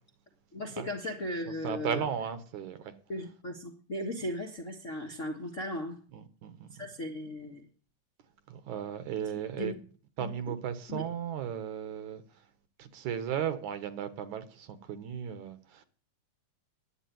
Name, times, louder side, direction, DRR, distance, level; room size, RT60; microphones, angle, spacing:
voice 1, 0.5-2.0 3.1-6.0 6.8-7.7 9.6-9.8 10.2-10.3 10.9-11.0, left 1 dB, 35° left, 1.2 m, -37 dB
voice 2, 1.6-2.9 6.1-6.9 8.5-9.7 10.2-12.2 12.8-15.8, right 8 dB, 65° right, 2.4 m, -36 dB
11.5 x 9.1 x 9.2 m
omnidirectional pair, 3.8 m